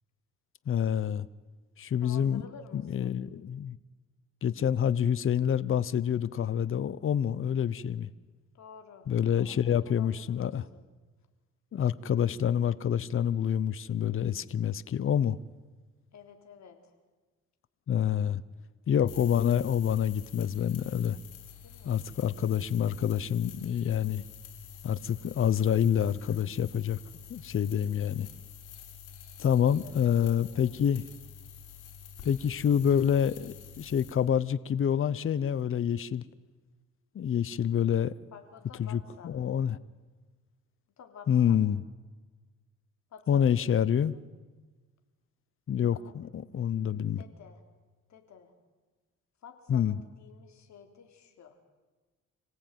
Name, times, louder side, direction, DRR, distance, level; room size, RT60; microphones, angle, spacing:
voice 1, 0.7-1.3 1.8-2.4 2.7-3.8 4.4-8.1 9.1-10.7 11.7-15.4 17.9-18.4 18.9-21.2 21.8-24.2 24.8-27.0 27.3-28.3 29.4-31.1 32.2-36.2 37.1-38.2 38.8-39.8 41.3-41.8 43.3-44.1 45.7-47.2 49.7-50.0, left 9 dB, 45° left, 18 dB, 0.8 m, -27 dB
voice 2, 2.0-3.1 8.5-9.1 9.4-10.8 16.1-16.8 21.6-22.0 29.8-30.8 38.3-39.3 41.0-41.6 43.1-44.2 45.9-46.1 47.2-47.6 48.1-48.5 49.4-49.8 50.2-51.5, left 6 dB, 65° left, 5 dB, 3.7 m, -51 dB
sound 1, 19.1-34.1, left 8 dB, 85° left, 5.8 m, -48 dB
26.5 x 17.5 x 9.2 m, 1.3 s
cardioid pair, 90°, 30 cm